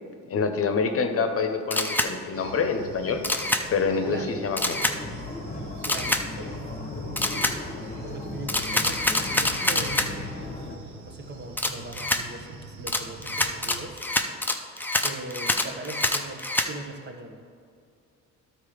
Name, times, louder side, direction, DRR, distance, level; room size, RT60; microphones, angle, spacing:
voice 1, 0.3-3.2 3.7-4.8, left 5 dB, 50° left, 6 dB, 0.9 m, -26 dB
Camera, 1.7-2.1 3.2-3.6 4.6-5.0 5.8-6.2 7.2-7.6 8.5-10.1 11.6-12.2 12.9-16.7, left 2 dB, 5° left, 0.6 m, -26 dB
sound 1, 2.3-13.9, right 3 dB, 70° right, 1.2 m, -45 dB
voice 2, 4.1-4.4 5.8-6.5 7.2-7.5 8.0-10.3 11.0-14.1 15.0-17.4, right 2 dB, 35° right, 3 dB, 1.1 m, -40 dB
sound 2, 4.8-10.8, left 2 dB, 25° left, 1.3 m, -36 dB
12.0 x 4.5 x 5.0 m, 2.3 s
cardioid pair, 90°, 30 cm